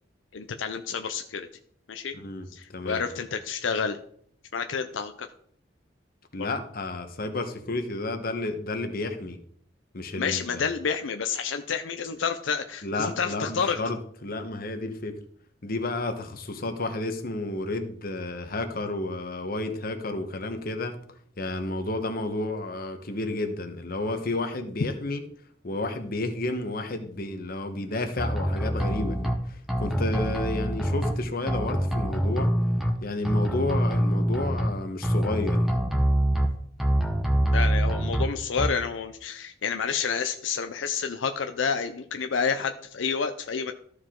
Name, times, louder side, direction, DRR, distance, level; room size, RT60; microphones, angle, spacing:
voice 1, 0.3-1.5 1.9-2.1 2.5-4.0 4.5-5.3 6.4-6.5 10.2-13.8 37.5-43.7, left 6 dB, 85° left, 7 dB, 0.6 m, -29 dB
voice 2, 2.1-3.0 6.3-9.4 9.9-10.6 12.8-15.2 15.6-21.0 21.4-25.2 25.6-32.5 33.0-35.8, left 2 dB, 50° left, 6 dB, 1.1 m, -31 dB
sound 1, 28.2-29.3 29.7-31.1 31.5-32.9 33.2-34.7 35.0-36.5 36.8-38.2 38.6-38.7, equal, ahead, 1.0 m, -25 dB
13.5 x 4.9 x 3.8 m, 0.62 s
head